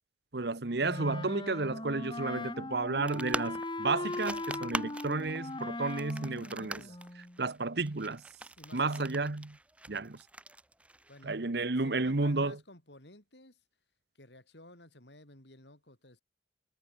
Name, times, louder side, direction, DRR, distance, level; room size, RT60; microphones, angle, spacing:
voice 1, 0.3-6.8 7.4-8.2 8.7-9.5 9.9-10.2 11.2-12.5, right 3 dB, 65° right, 1.1 m, -32 dB
Wind instrument woodwind instrument, 0.8-7.4, left 2 dB, 25° left, 2.4 m, -39 dB
sound 1, 3.1-11.3, right 2 dB, 5° right, 0.6 m, -43 dB
voice 2, 6.1-7.0 8.6-9.1 11.1-11.4 11.8-13.6 14.1-16.2, left 1 dB, 70° left, 6.5 m, -54 dB
head